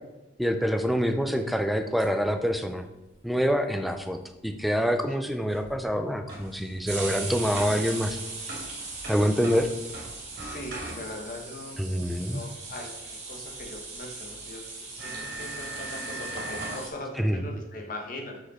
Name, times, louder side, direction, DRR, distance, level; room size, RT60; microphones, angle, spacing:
voice 1, 0.4-2.8 3.2-4.2 4.4-8.2 9.1-9.7 11.8-12.4 17.2-17.4, equal, ahead, 6 dB, 0.4 m, -26 dB
sound 1, 1.7-2.5 2.8-2.9 3.1-3.2 3.4-4.0 4.3-4.4 4.7-5.0 5.8-5.9 6.8-16.9, right 3 dB, 35° right, 1.7 m, -39 dB
sound 2, 5.5-11.4 13.5-13.6 14.3-14.4 15.0-16.8, right 1 dB, 50° right, 2.1 m, -40 dB
voice 2, 10.4-11.8 12.1-14.6 15.0-18.5, left 1 dB, 45° left, 1 dB, 1.3 m, -40 dB
6.1 x 5.3 x 4.2 m, 1.0 s
head